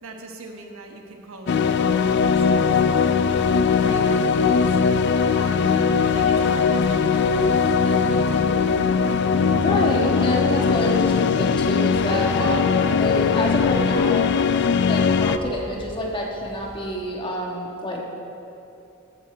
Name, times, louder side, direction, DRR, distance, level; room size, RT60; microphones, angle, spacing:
voice 1, 0.0-3.2 3.6-4.8 5.3-9.9, right 2 dB, 90° right, 3 dB, 1.2 m, -40 dB
sound 1, 1.5-15.4, left 5 dB, 55° left, 0.4 m, -20 dB
sound 2, 1.8-16.9, equal, 15° right, 1.5 m, -44 dB
voice 2, 9.5-14.3 14.8-18.0, equal, 25° left, -2 dB, 1.5 m, -27 dB
14.0 x 8.2 x 4.5 m, 2.8 s
head